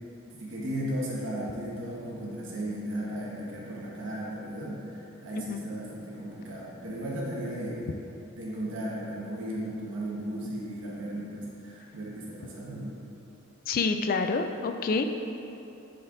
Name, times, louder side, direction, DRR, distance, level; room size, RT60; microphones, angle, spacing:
voice 1, 0.3-8.0 8.3-13.0, right 1 dB, 60° right, -6 dB, 1.3 m, -35 dB
voice 2, 13.7-15.1, left 4 dB, 40° left, 7 dB, 0.3 m, -27 dB
10.0 x 4.3 x 2.6 m, 2.9 s
head